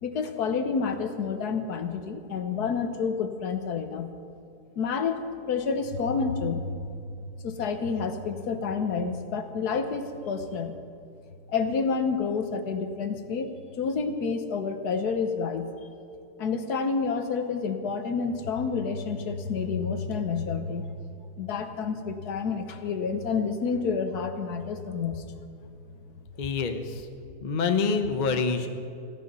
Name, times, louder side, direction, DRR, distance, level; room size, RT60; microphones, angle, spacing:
voice 1, 0.0-4.1 4.8-5.2 5.5-7.0 7.4-10.7 11.5-15.7 16.4-20.9 21.4-25.2, left 5 dB, 70° left, 7 dB, 1.5 m, -29 dB
voice 2, 26.4-27.1 27.4-28.7, left 4 dB, 40° left, 6 dB, 0.7 m, -26 dB
16.5 x 11.0 x 5.5 m, 2.5 s
omnidirectional pair, 1.8 m